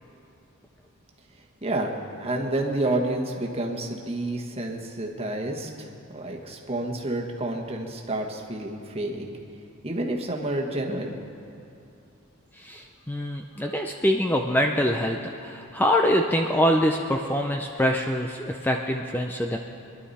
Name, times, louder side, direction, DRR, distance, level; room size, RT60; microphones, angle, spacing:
voice 1, 1.6-1.9 2.2-9.3 9.8-11.2, right 1 dB, 30° right, 0 dB, 1.4 m, -29 dB
voice 2, 12.6-19.6, equal, 10° left, 3 dB, 0.5 m, -24 dB
23.5 x 11.5 x 4.2 m, 2.7 s
head